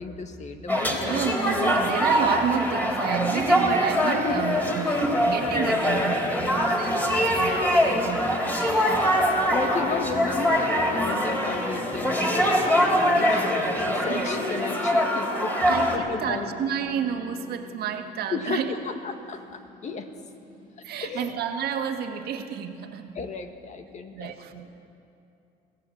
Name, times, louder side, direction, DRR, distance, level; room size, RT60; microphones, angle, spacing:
voice 1, 0.0-1.7 4.2-4.5 9.5-15.5 15.9-16.5 18.3-20.1 21.0-21.3 23.2-24.3, left 4 dB, 45° left, 7 dB, 1.8 m, -33 dB
sound 1, 0.7-16.0, equal, 10° left, 3.3 m, -23 dB
voice 2, 0.9-8.3 9.3-9.8 13.2-13.4 14.1-14.3 15.6-18.7 20.8-23.2 24.1-24.8, right 8 dB, 70° right, 5 dB, 1.9 m, -31 dB
sound 2, 8.8-21.7 22.3-22.4, left 2 dB, 60° left, 4.2 m, -38 dB
22.0 x 16.0 x 8.5 m, 2.7 s
cardioid pair, 110°, 17 cm